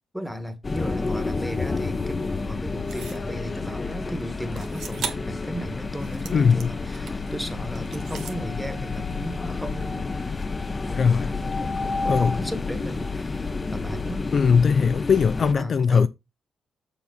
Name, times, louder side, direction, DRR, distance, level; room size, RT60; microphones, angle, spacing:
voice 1, 0.1-10.2 10.8-13.4 13.7-14.3 15.4-16.1, equal, ahead, 1.3 m, -35 dB
sound 1, 0.6-15.5, left 3 dB, 25° left, 0.7 m, -30 dB
sound 2, 2.9-3.3 4.5-5.4 5.8-7.3 7.8-8.4, right 7 dB, 80° right, 1.2 m, -37 dB
voice 2, 6.3-6.8 11.0-11.3 12.0-12.4 14.3-16.1, left 6 dB, 50° left, 0.4 m, -20 dB
7.1 x 5.5 x 3.9 m
cardioid pair, 105°, 0 cm